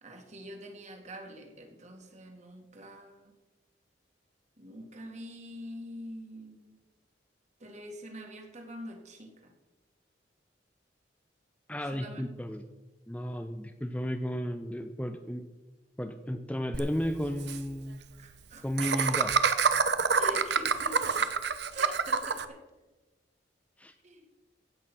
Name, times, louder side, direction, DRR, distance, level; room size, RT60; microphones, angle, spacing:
voice 1, 0.0-3.3 4.6-6.8 7.6-9.5 11.9-12.3 18.2-19.1 20.1-22.6 24.0-24.3, equal, 40° right, 3 dB, 2.4 m, -45 dB
voice 2, 11.7-12.6 13.1-15.4 16.0-18.0 18.6-19.3 23.8-23.9, equal, 10° left, 6 dB, 0.7 m, -33 dB
Laughter, 16.7-16.8 17.1-17.2 17.4-17.6 18.8-22.4, right 5 dB, 65° right, 1.0 m, -26 dB
16.0 x 9.1 x 6.1 m, 1.1 s
head